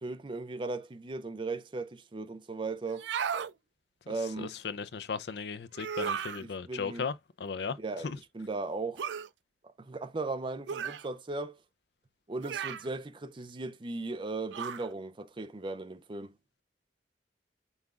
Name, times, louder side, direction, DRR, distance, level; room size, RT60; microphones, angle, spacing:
voice 1, 0.0-3.1 4.1-4.5 6.3-7.0 7.8-8.1 8.3-9.1 9.8-11.6 12.3-16.4, right 3 dB, 30° right, 0.5 m, -37 dB
sound 1, 2.9-3.5 5.7-6.4 9.0-9.3 10.7-11.1 12.4-12.9 14.5-14.9, right 7 dB, 85° right, 0.4 m, -35 dB
voice 2, 4.4-7.8 8.0-8.2, left 5 dB, 70° left, 0.5 m, -36 dB
5.5 x 3.4 x 2.4 m
head